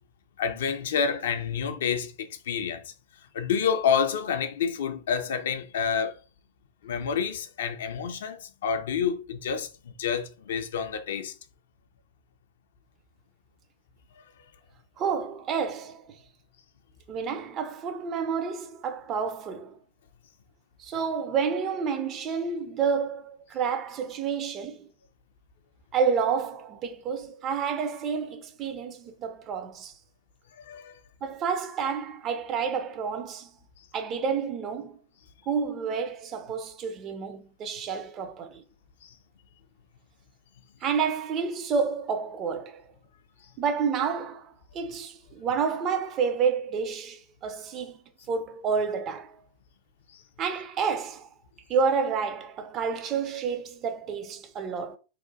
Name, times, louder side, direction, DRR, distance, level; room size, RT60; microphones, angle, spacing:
voice 1, 0.4-2.8 3.3-6.2 6.8-9.7 10.0-11.3 30.6-31.0 39.0-39.1, left 7 dB, 60° left, 0.3 m, -28 dB
voice 2, 15.0-16.1 17.1-19.8 20.8-24.9 25.9-29.9 31.2-33.5 33.9-35.0 35.5-38.6 40.8-42.8 43.6-48.0 48.3-49.3 50.4-51.3 51.7-55.0, right 6 dB, 30° right, 0.4 m, -29 dB
2.9 x 2.1 x 2.6 m
figure-of-eight pair, 90°, 0 cm